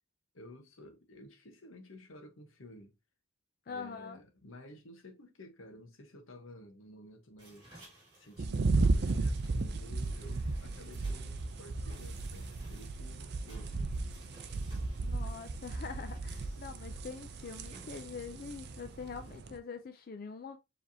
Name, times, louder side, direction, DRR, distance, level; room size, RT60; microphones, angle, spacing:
voice 1, 0.3-2.9 3.7-7.7 8.2-13.9, left 1 dB, 70° left, 1.1 m, -53 dB
voice 2, 3.7-4.2 15.0-20.6, left 5 dB, 45° left, 0.4 m, -44 dB
sound 1, 7.4-19.4, right 2 dB, 25° right, 2.5 m, -59 dB
sound 2, 8.4-19.6, right 3 dB, 50° right, 0.4 m, -35 dB
4.9 x 3.4 x 2.7 m
head